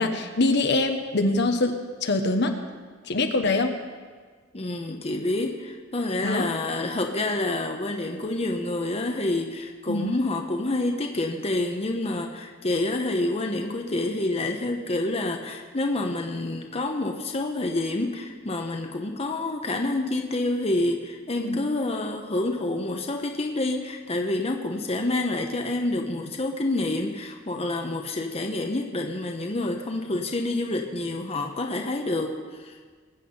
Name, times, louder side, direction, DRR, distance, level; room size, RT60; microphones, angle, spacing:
voice 1, 0.0-1.8 2.0-2.5 3.1-3.7 6.2-6.4 9.9-10.1 21.4-21.6, left 2 dB, 60° left, 6 dB, 1.1 m, -23 dB
voice 2, 4.5-32.7, left 2 dB, 30° left, 3 dB, 1.0 m, -28 dB
21.0 x 8.5 x 5.5 m, 1.5 s
head